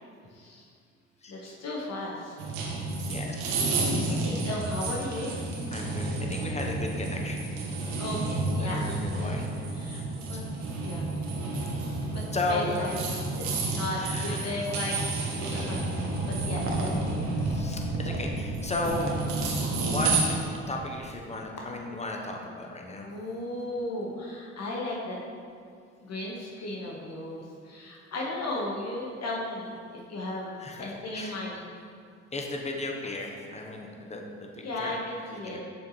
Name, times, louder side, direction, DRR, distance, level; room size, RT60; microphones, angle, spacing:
voice 1, 0.3-0.7 1.3-2.4 3.6-5.3 8.0-8.8 9.1-9.4 9.7-10.0 10.3-10.4 10.8-11.0 12.1-14.9 15.3-17.3 22.9-25.2 26.0-31.7 34.6-35.6, left 1 dB, 55° left, -3 dB, 1.4 m, -36 dB
sound 1, 2.4-20.2, right 2 dB, 85° right, 1.0 m, -31 dB
voice 2, 3.1-3.6 4.1-4.2 5.7-7.9 8.6-9.4 10.3-10.4 12.3-12.7 14.0-14.5 17.4-19.1 19.8-20.1 20.7-23.1 30.6-30.9 31.1-31.4 32.3-35.0 35.4-35.6, left 2 dB, 20° left, 1 dB, 1.1 m, -35 dB
sound 2, 16.6-21.3, right 2 dB, 45° right, 1.2 m, -38 dB
7.2 x 6.0 x 3.2 m, 2.2 s
hypercardioid pair, 55°, 31 cm